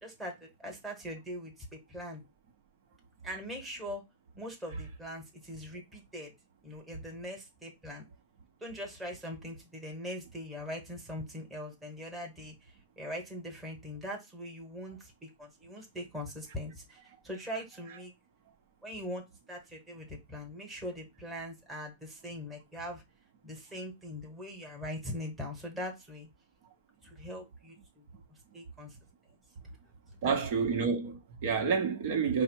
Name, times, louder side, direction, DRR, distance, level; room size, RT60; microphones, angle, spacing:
voice 1, 0.0-2.2 3.2-4.0 4.3-6.3 6.6-8.0 8.6-12.5 13.0-18.1 18.8-23.0 23.4-26.3 27.0-28.0 28.5-29.0 30.2-30.4, equal, 5° right, 1.3 m, -41 dB
voice 2, 30.2-32.4, right 5 dB, 55° right, 1.0 m, -29 dB
4.7 x 2.1 x 4.6 m
supercardioid pair, 155°, 0 cm